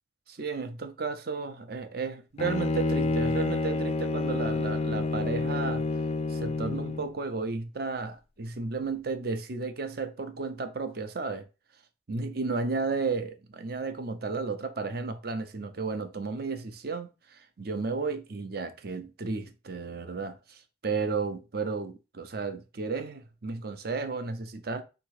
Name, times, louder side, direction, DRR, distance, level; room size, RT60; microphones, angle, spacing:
voice 1, 0.3-5.8 6.3-11.5 12.1-24.8, right 4 dB, 55° right, 0.6 m, -33 dB
Bowed string instrument, 2.4-7.1, left 3 dB, 35° left, 0.4 m, -29 dB
3.7 x 2.9 x 4.7 m
head